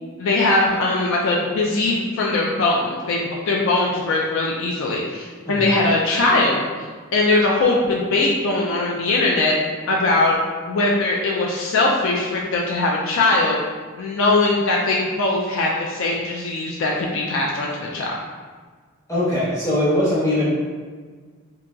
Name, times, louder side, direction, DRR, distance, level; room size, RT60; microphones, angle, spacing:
voice 1, 0.2-6.7 7.1-9.5 9.9-10.4 10.7-13.6 14.0-18.1, left 2 dB, 65° left, -2 dB, 0.3 m, -20 dB
voice 2, 19.1-20.5, left 1 dB, 15° left, -10 dB, 1.0 m, -21 dB
2.8 x 2.7 x 2.2 m, 1.5 s
head